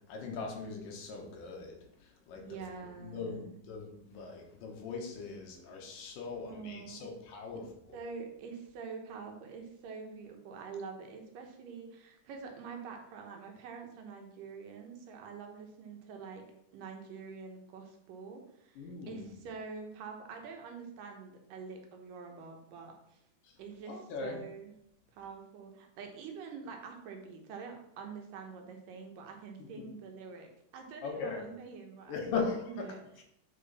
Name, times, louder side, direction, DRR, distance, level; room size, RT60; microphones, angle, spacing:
voice 1, 0.1-2.6 3.0-7.6 18.8-19.3 23.4-23.6 23.9-24.4 29.6-29.8 31.0-31.5 32.1-32.9 33.2-33.3, left 4 dB, 75° left, 1 dB, 2.8 m, -39 dB
voice 2, 2.4-3.6 6.4-7.1 7.9-16.4 16.7-23.2 23.6-24.7 25.1-33.0, right 5 dB, 75° right, 3 dB, 2.6 m, -46 dB
8.6 x 4.8 x 4.1 m, 0.75 s
omnidirectional pair, 4.0 m